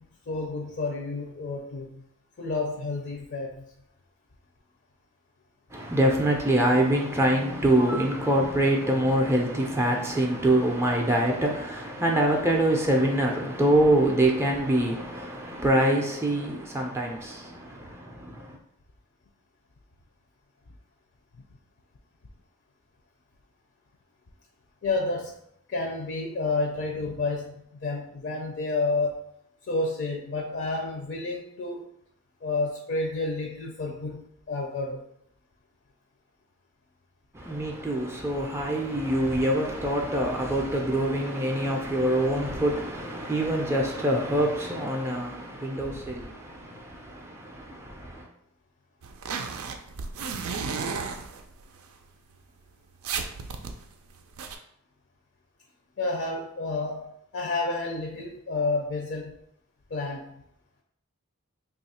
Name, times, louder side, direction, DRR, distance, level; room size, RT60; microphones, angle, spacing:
voice 1, 0.3-2.0 2.4-3.6 24.8-25.4 25.7-29.3 29.7-31.8 32.4-35.0 56.0-59.3 59.9-60.3, left 3 dB, 55° left, 0.5 m, -30 dB
voice 2, 5.7-18.6 37.3-48.3, right 1 dB, 10° right, 0.4 m, -25 dB
sound 1, 49.0-51.8 52.3-52.4 52.7-52.8 53.0-54.6, right 5 dB, 85° right, 0.4 m, -33 dB
3.0 x 2.4 x 4.1 m
head